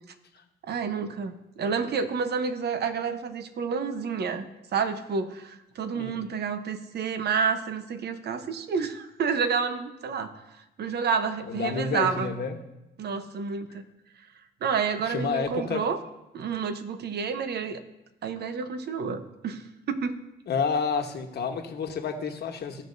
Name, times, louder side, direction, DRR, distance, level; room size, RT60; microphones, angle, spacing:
voice 1, 0.6-4.5 4.7-10.3 10.8-12.3 13.0-13.8 14.6-16.0 16.3-17.8 18.2-20.2, right 6 dB, 60° right, 9 dB, 0.9 m, -29 dB
voice 2, 11.5-12.6 15.1-15.8 20.5-22.8, left 5 dB, 60° left, 4 dB, 1.3 m, -29 dB
16.0 x 6.3 x 2.7 m, 0.92 s
cardioid pair, 85°, 20 cm